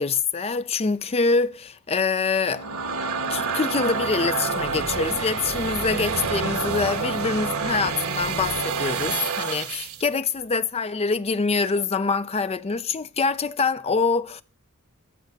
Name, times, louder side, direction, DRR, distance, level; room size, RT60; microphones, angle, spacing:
voice 1, 0.0-2.7 3.3-14.4, left 4 dB, 30° left, 0.5 m, -25 dB
sound 1, 2.3-10.1, right 5 dB, 80° right, 1.4 m, -28 dB
14.5 x 5.4 x 6.6 m
head